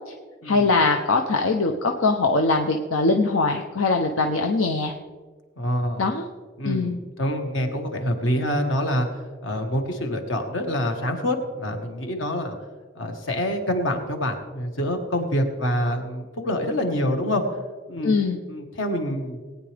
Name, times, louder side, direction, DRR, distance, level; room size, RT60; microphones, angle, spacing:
voice 1, 0.4-4.9 6.0-6.2 6.6-7.0 18.0-18.4, left 3 dB, 85° left, 3 dB, 0.8 m, -22 dB
voice 2, 5.6-6.0 6.6-9.1 9.4-12.6 12.9-17.4 17.9-18.2 18.5-19.4, equal, 65° left, 4 dB, 1.6 m, -26 dB
19.5 x 9.3 x 3.4 m, 1.4 s
head